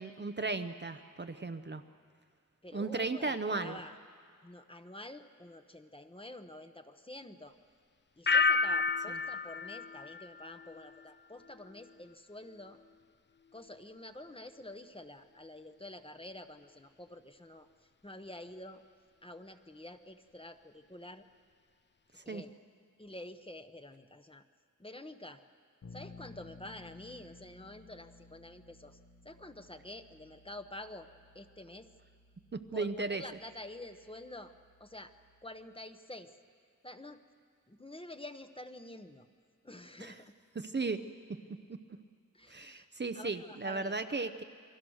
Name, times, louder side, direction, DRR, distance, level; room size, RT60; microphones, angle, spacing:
voice 1, 0.0-1.8 2.7-3.8 22.2-22.4 32.5-33.2 40.0-40.1 40.6-41.0 42.5-44.4, right 3 dB, 35° right, 8 dB, 0.8 m, -35 dB
voice 2, 2.6-4.0 4.4-7.6 8.2-12.8 13.5-17.7 18.0-18.8 19.2-21.3 22.2-22.5 23.0-24.4 24.8-25.4 25.9-29.0 29.2-31.1 31.3-31.9 32.7-34.5 34.8-35.1 35.4-36.3 36.8-37.2 37.7-39.3 39.6-40.3 42.3-42.9 43.1-44.4, left 1 dB, 15° left, 8 dB, 1.0 m, -48 dB
sound 1, 8.3-11.1 11.4-11.9, left 4 dB, 35° left, 0.5 m, -31 dB
Bass guitar, 25.8-35.6, left 4 dB, 70° left, 1.4 m, -57 dB
28.5 x 22.0 x 6.4 m, 2.1 s
wide cardioid pair, 115°, 32 cm